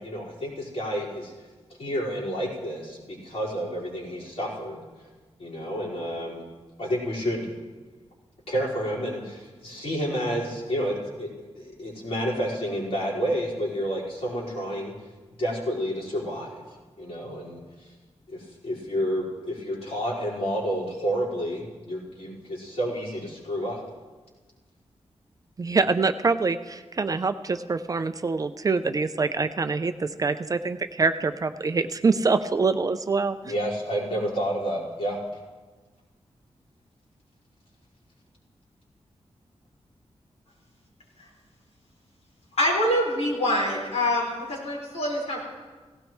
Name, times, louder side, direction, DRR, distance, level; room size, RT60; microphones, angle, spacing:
voice 1, 0.0-1.3 1.8-4.8 5.4-6.4 6.8-7.5 8.5-14.9 15.4-17.9 18.3-23.8 33.4-35.2, equal, 70° left, -7 dB, 4.7 m, -30 dB
voice 2, 25.6-33.5, right 4 dB, 35° right, 10 dB, 0.4 m, -25 dB
voice 3, 42.6-45.4, left 1 dB, 90° left, -5 dB, 5.0 m, -25 dB
17.5 x 16.5 x 3.1 m, 1.3 s
wide cardioid pair, 175°, 11 cm